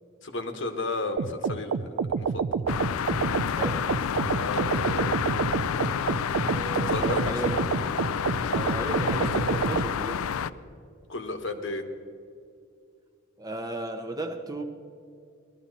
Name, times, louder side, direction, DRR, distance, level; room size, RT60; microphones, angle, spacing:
voice 1, 0.2-2.5 4.4-5.1 6.9-7.5 11.1-11.8, left 2 dB, 60° left, 1.3 m, -33 dB
sound 1, 1.2-9.9, right 5 dB, 65° right, 0.4 m, -28 dB
sound 2, 2.7-10.5, left 7 dB, 85° left, 0.4 m, -29 dB
voice 2, 3.5-3.9 6.4-7.6 8.5-10.3 13.4-14.6, right 2 dB, 20° right, 0.8 m, -35 dB
19.0 x 13.0 x 4.1 m
head